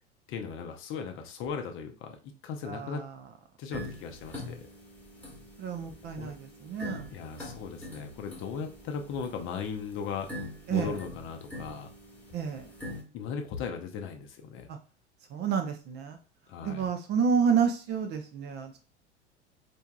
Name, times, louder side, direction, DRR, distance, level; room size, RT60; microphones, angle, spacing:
voice 1, 0.3-3.0 3.6-4.7 6.2-6.3 7.1-10.3 10.7-11.9 13.1-14.7 16.5-16.9, left 6 dB, 35° left, 4 dB, 0.6 m, -37 dB
voice 2, 2.6-3.2 5.6-7.1 10.7-11.0 12.3-12.7 14.7-14.8 15.3-16.2 16.6-18.8, right 6 dB, 30° right, 6 dB, 0.5 m, -29 dB
sound 1, 3.7-13.0, left 1 dB, 5° left, 1.2 m, -44 dB
4.4 x 2.6 x 2.2 m, 0.36 s
figure-of-eight pair, 75°, 34 cm